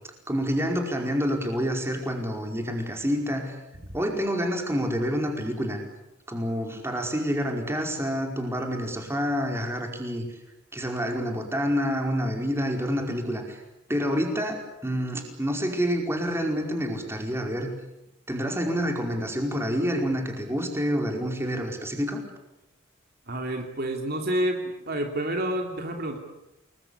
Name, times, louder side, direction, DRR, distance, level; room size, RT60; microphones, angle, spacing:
voice 1, 0.3-3.5 3.9-5.8 6.3-10.3 10.7-13.6 13.9-17.7 18.3-22.2, equal, 15° right, 2 dB, 4.9 m, -28 dB
voice 2, 23.3-26.2, right 1 dB, 50° right, 3 dB, 3.1 m, -29 dB
29.5 x 21.5 x 8.5 m, 0.91 s
head